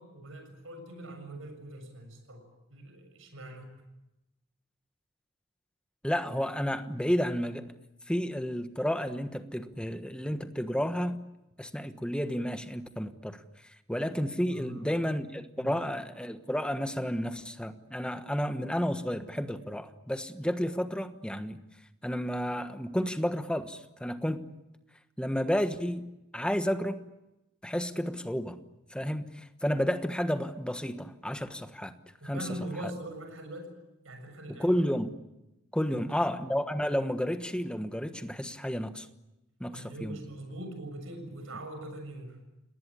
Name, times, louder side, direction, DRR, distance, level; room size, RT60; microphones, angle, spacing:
voice 1, 0.0-3.7 14.5-14.9 15.5-15.8 32.2-33.7 34.0-34.7 35.9-36.4 39.7-42.4, right 1 dB, 75° right, 6 dB, 7.0 m, -42 dB
voice 2, 6.0-7.7 8.1-11.2 11.6-13.4 13.9-21.6 22.0-24.5 25.2-26.0 26.3-27.0 27.6-28.6 28.9-31.9 32.2-32.5 34.5-35.2 35.7-39.1 39.6-40.2, equal, 5° left, 9 dB, 1.3 m, -31 dB
29.5 x 19.5 x 8.5 m, 0.93 s
head